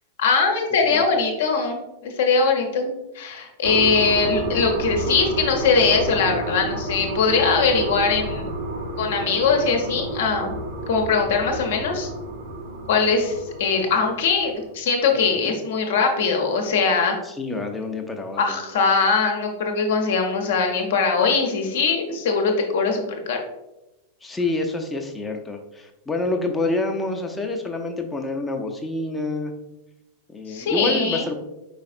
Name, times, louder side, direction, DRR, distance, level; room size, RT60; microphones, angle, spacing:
voice 1, 0.2-8.5 9.0-10.5 10.9-12.1 12.9-17.1 18.4-23.4 30.5-31.2, left 4 dB, 55° left, 3 dB, 0.8 m, -21 dB
sound 1, 3.6-14.7, right 2 dB, 50° right, 0.9 m, -30 dB
voice 2, 17.3-18.6 24.2-29.5 30.3-31.3, left 2 dB, 10° left, 3 dB, 0.6 m, -27 dB
4.8 x 4.1 x 2.5 m, 0.96 s
figure-of-eight pair, 90°, 0 cm